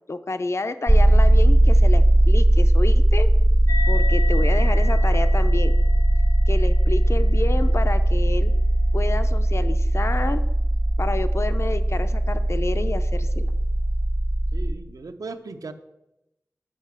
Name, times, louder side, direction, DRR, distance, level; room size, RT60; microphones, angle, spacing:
voice 1, 0.1-3.3 3.9-5.8 6.5-8.5 8.9-10.4 11.0-13.5, left 3 dB, 50° left, 11 dB, 0.6 m, -29 dB
sound 1, 0.9-14.7, right 1 dB, 15° right, 0.3 m, -18 dB
sound 2, 3.7-10.6, left 3 dB, 80° left, 2.8 m, -37 dB
voice 2, 14.5-15.7, right 3 dB, 85° right, 8 dB, 0.7 m, -37 dB
7.7 x 5.7 x 7.4 m, 0.92 s
wide cardioid pair, 70°, 6 cm